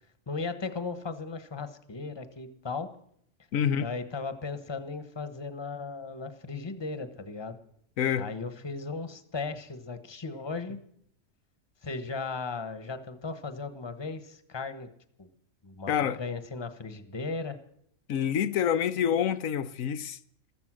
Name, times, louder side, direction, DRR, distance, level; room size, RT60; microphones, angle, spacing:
voice 1, 0.3-2.9 3.8-7.6 8.2-10.8 11.8-14.9 15.2-15.3 15.6-15.9 16.2-17.6, left 4 dB, 20° left, 1.2 m, -36 dB
voice 2, 3.5-3.9 8.0-8.3 15.9-16.2 18.1-20.2, left 9 dB, 85° left, 1.2 m, -27 dB
14.0 x 14.0 x 6.3 m
omnidirectional pair, 1.4 m